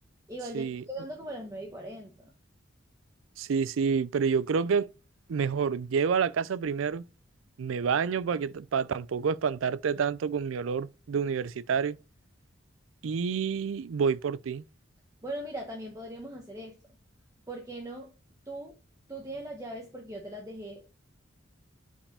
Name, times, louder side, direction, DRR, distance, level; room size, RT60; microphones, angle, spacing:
voice 1, 0.3-2.3 15.2-16.8 17.5-18.1 18.5-18.7 19.1-20.8, right 1 dB, 15° right, 0.9 m, -39 dB
voice 2, 3.4-4.9 5.3-7.0 7.6-12.0 13.0-14.6, right 6 dB, 90° right, 0.4 m, -28 dB
5.4 x 4.8 x 4.2 m
head